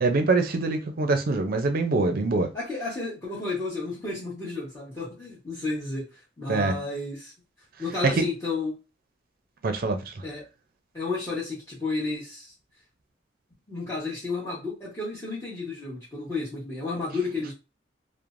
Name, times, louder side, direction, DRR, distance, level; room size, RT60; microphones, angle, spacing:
voice 1, 0.0-2.5 6.5-6.8 8.0-8.3 9.6-10.1, right 3 dB, 55° right, 0.5 m, -24 dB
voice 2, 2.5-6.0 6.4-7.3 7.8-8.7 10.2-10.4 10.9-12.5 13.7-17.5, left 3 dB, 15° left, 1.0 m, -32 dB
3.1 x 2.0 x 2.5 m
head